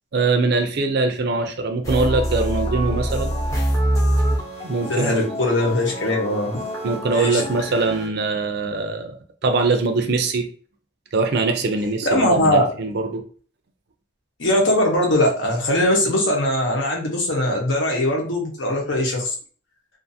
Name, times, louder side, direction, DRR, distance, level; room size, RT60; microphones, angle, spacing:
voice 1, 0.1-3.3 4.6-5.3 6.8-9.2 9.4-10.5 11.1-13.2, right 3 dB, 55° right, 6 dB, 0.4 m, -22 dB
sound 1, 1.8-8.1, right 1 dB, 15° left, 0.6 m, -25 dB
voice 2, 4.9-6.5 7.1-7.4 12.0-12.6 14.4-19.3, left 1 dB, 70° left, -1 dB, 0.9 m, -20 dB
2.6 x 2.5 x 2.6 m, 0.42 s
head